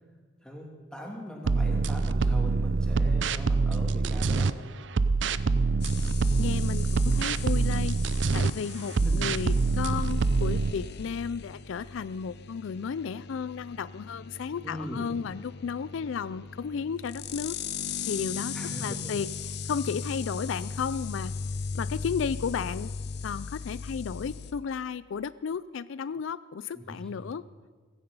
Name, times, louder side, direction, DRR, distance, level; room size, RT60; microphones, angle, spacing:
voice 1, 0.4-4.5 9.0-9.4 14.6-15.1 18.5-19.1 26.7-27.3, equal, 5° left, -1 dB, 2.7 m, -40 dB
sound 1, 1.4-4.5 5.0-8.5 9.0-10.7, right 4 dB, 65° right, 0.5 m, -25 dB
sound 2, 5.8-24.5, left 5 dB, 55° left, 0.7 m, -38 dB
voice 2, 6.4-8.0 8.3-17.5 18.1-18.5 18.8-21.3 21.8-22.9 23.2-27.4, left 6 dB, 75° left, 17 dB, 0.4 m, -33 dB
16.0 x 15.5 x 5.5 m, 1.4 s
head